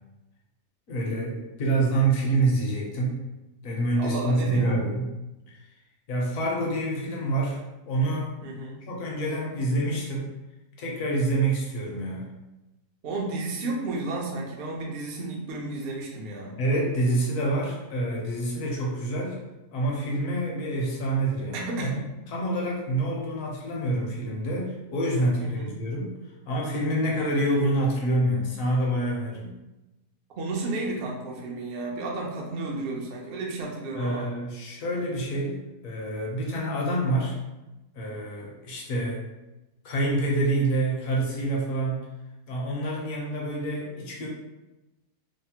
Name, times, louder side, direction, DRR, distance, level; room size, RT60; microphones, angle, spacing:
voice 1, 0.9-3.2 3.6-5.1 6.1-7.6 7.9-8.3 8.9-10.3 10.8-12.3 16.6-19.4 19.7-21.9 22.3-26.1 26.4-29.6 33.9-37.4 37.9-39.2 39.8-42.1 42.5-44.3, right 2 dB, 65° left, -2 dB, 1.0 m, -27 dB
voice 2, 4.0-4.8 8.4-8.8 13.0-16.6 21.5-22.0 25.4-25.7 30.4-34.3, right 2 dB, 75° right, -1 dB, 0.5 m, -32 dB
3.1 x 2.0 x 2.7 m, 1.0 s
omnidirectional pair, 1.7 m